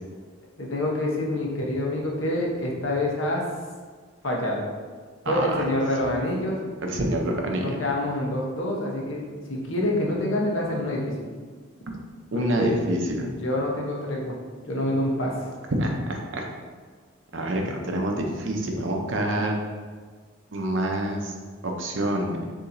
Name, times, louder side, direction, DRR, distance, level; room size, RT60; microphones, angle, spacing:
voice 1, 0.6-3.4 4.2-4.6 5.3-6.6 7.6-9.2 9.5-11.3 12.3-12.8 13.4-14.4 14.7-15.3, left 1 dB, 70° left, -2 dB, 0.9 m, -26 dB
voice 2, 5.2-5.6 6.8-7.8 12.3-13.3 15.8-16.5 17.3-19.6 20.5-21.3 21.6-22.4, right 1 dB, 65° right, 2 dB, 0.6 m, -27 dB
6.9 x 2.8 x 2.6 m, 1.5 s
head